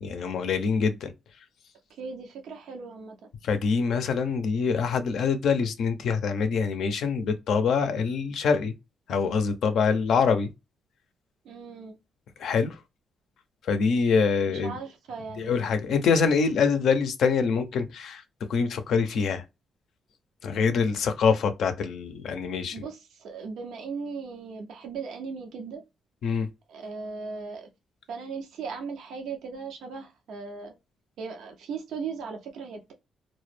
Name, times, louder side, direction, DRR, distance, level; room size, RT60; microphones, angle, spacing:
voice 1, 0.0-1.1 3.4-8.7 9.1-10.5 12.4-12.8 13.7-14.7 15.4-18.2 18.5-19.4 20.4-22.8 26.2-26.5, left 5 dB, 75° left, 0.4 m, -25 dB
voice 2, 1.9-3.3 11.4-12.0 14.5-15.7 22.7-25.8 26.7-27.7 28.1-30.7 31.2-32.9, right 5 dB, 85° right, 0.4 m, -38 dB
2.1 x 2.0 x 3.1 m
supercardioid pair, 65°, 0 cm